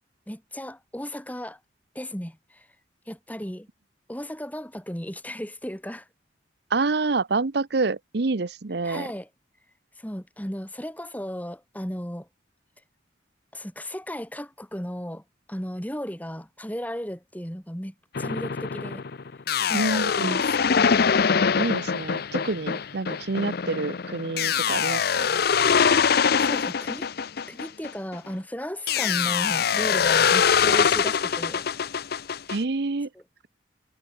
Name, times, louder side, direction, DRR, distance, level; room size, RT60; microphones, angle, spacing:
voice 1, 0.3-1.6 1.9-2.7 3.1-3.7 4.1-6.1 8.8-9.3 10.0-12.3 13.5-15.2 15.5-19.0 19.6-20.6 26.3-27.1 27.5-31.6 33.1-33.2, equal, 10° left, 5.6 m, -35 dB
voice 2, 6.7-9.1 19.7-20.4 21.6-25.3 32.5-33.1, right 3 dB, 60° right, 0.7 m, -27 dB
sound 1, 18.1-28.3 28.9-32.6, left 6 dB, 55° left, 0.6 m, -23 dB
head